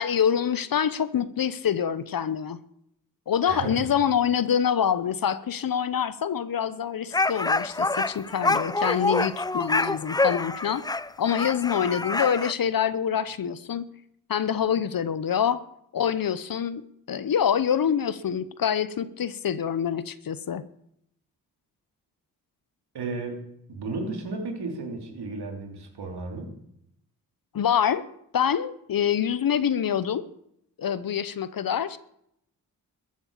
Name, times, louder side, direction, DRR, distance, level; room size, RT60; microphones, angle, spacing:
voice 1, 0.0-2.6 3.3-10.9 11.2-13.9 14.3-15.6 15.9-20.7 27.5-28.1 28.3-30.2 30.8-32.0, left 8 dB, 60° left, 15 dB, 0.9 m, -26 dB
voice 2, 3.5-3.9 22.9-23.4 23.7-26.6, right 3 dB, 80° right, 3 dB, 3.3 m, -33 dB
sound 1, 7.1-12.5, left 2 dB, 10° left, 0.4 m, -26 dB
14.0 x 8.8 x 7.3 m, 0.74 s
cardioid pair, 50°, 39 cm